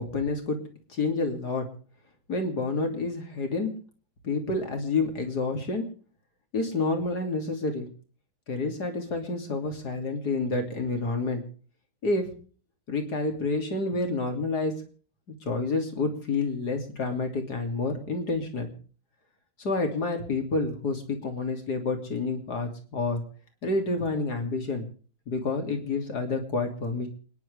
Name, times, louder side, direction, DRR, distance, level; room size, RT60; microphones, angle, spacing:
voice 1, 0.0-1.7 2.3-3.7 4.2-5.8 6.5-7.9 8.5-11.4 12.0-12.2 12.9-14.7 15.4-18.7 19.6-23.2 23.6-24.9 25.3-27.1, left 3 dB, 50° left, 4 dB, 3.4 m, -29 dB
29.0 x 10.5 x 3.5 m, 0.42 s
omnidirectional pair, 2.3 m